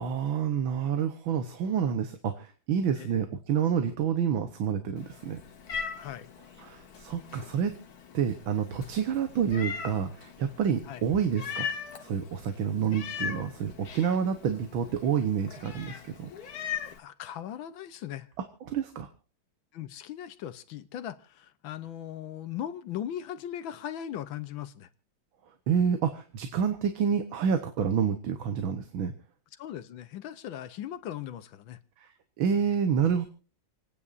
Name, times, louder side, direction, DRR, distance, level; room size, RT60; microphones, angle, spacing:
voice 1, 0.0-5.4 6.6-7.8 8.1-11.7 12.0-16.3 18.7-19.1 25.7-29.1 32.0-32.1 32.4-33.3, right 7 dB, 80° right, 1.9 m, -28 dB
Meow, 5.0-17.0, left 7 dB, 55° left, 1.7 m, -40 dB
voice 2, 6.0-6.3 10.8-11.1 17.0-18.3 19.7-24.9 29.5-31.8, left 10 dB, 80° left, 1.6 m, -39 dB
28.5 x 9.8 x 2.6 m
omnidirectional pair, 2.2 m